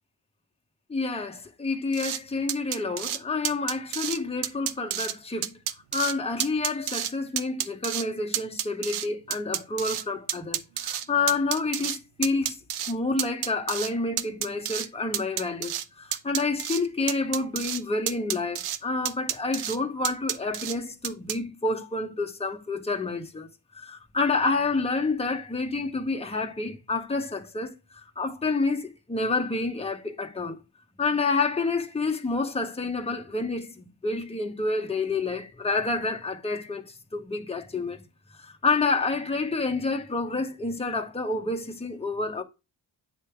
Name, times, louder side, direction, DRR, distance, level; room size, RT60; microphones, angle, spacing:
voice 1, 0.9-5.6 5.9-12.6 12.9-23.5 23.7-30.6 31.0-38.0 38.4-42.4, left 3 dB, 10° left, 1.0 m, -29 dB
sound 1, 1.9-2.2 2.5-3.2 3.5-4.2 4.4-5.1 5.4-6.1 6.4-7.1 7.4-8.0 8.3-10.0 10.3-12.0 12.2-12.9 13.2-13.9 14.2-14.9 15.1-15.9 16.1-16.8 17.1-17.8 18.1-18.8 19.1-19.8 20.0-20.8 21.0-21.4, right 11 dB, 90° right, 0.7 m, -30 dB
8.2 x 3.3 x 4.5 m
cardioid pair, 65°, 49 cm